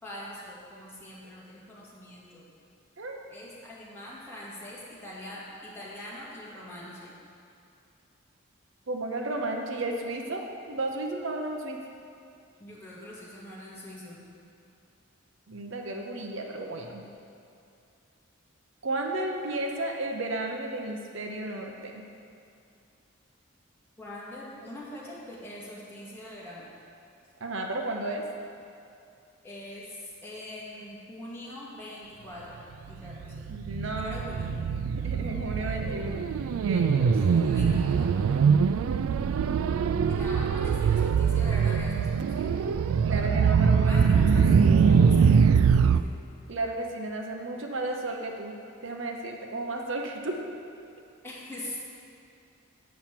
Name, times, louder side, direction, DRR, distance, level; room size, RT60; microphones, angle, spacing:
voice 1, 0.0-2.5 3.3-7.1 12.6-14.2 24.0-26.7 29.4-32.6 32.9-33.5 33.9-34.5 37.2-38.3 40.1-42.7 43.8-46.1 51.2-51.8, left 1 dB, 10° left, -8 dB, 2.0 m, -42 dB
voice 2, 8.9-11.8 15.5-17.0 18.8-22.0 27.4-28.2 33.5-34.2 34.8-36.3 36.6-37.2 39.8-40.2 43.0-44.1 44.6-45.0 46.5-48.6 48.8-50.4, right 2 dB, 65° right, 2 dB, 0.8 m, -33 dB
sound 1, 32.9-46.0, right 6 dB, 90° right, 0.3 m, -23 dB
8.5 x 5.8 x 7.5 m, 2.6 s
head